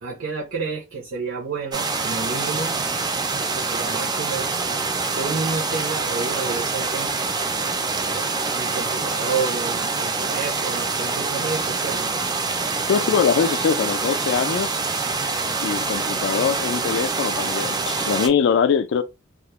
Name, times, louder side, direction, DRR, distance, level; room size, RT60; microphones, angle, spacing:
voice 1, 0.0-2.8 3.5-4.5 5.1-7.1 7.9-8.3 8.5-12.2, right 4 dB, 80° right, 0.7 m, -30 dB
sound 1, 1.7-18.3, right 4 dB, 20° right, 0.3 m, -25 dB
voice 2, 12.9-14.8 15.6-19.0, left 6 dB, 65° left, 0.3 m, -22 dB
2.3 x 2.0 x 2.9 m
head